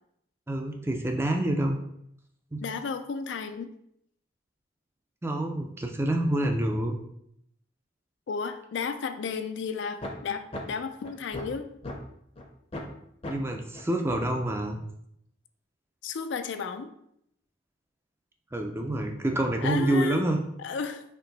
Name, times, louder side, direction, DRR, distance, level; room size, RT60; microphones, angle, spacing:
voice 1, 0.5-1.8 2.5-2.7 5.2-7.0 13.3-14.8 18.5-20.4, right 1 dB, 10° right, 3 dB, 0.4 m, -27 dB
voice 2, 2.6-3.7 8.3-11.7 16.0-16.9 19.6-20.3 20.6-21.0, left 5 dB, 70° left, 9 dB, 0.4 m, -33 dB
sound 1, 10.0-10.1 10.5-10.6 11.0-12.0 12.4-12.5 12.7-12.9 13.2-13.3 13.7-13.8 14.1-14.3, left 1 dB, 30° left, 0.6 m, -36 dB
4.4 x 3.0 x 3.9 m, 0.75 s
head